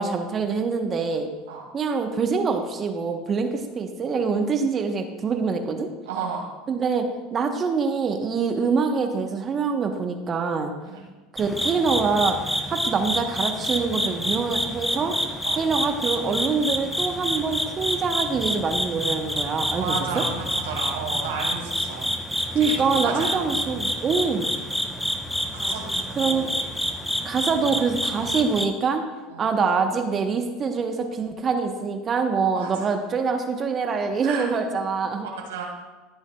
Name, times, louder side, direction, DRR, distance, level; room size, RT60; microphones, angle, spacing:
voice 1, 0.0-1.3 1.7-5.9 6.7-10.7 11.3-12.4 12.7-15.1 15.6-20.2 22.5-24.5 26.2-26.5 27.2-29.1 29.4-35.3, right 5 dB, 35° right, 5 dB, 1.0 m, -25 dB
voice 2, 6.1-6.5 10.9-11.0 15.4-15.6 19.8-22.1 22.6-23.5 25.5-26.5 29.3-29.5 32.5-32.9 34.2-34.5 35.2-35.7, right 5 dB, 85° right, -1 dB, 2.2 m, -33 dB
sound 1, 11.4-28.7, equal, 5° left, 0.9 m, -28 dB
14.5 x 7.0 x 2.3 m, 1.2 s
hypercardioid pair, 90°, 0 cm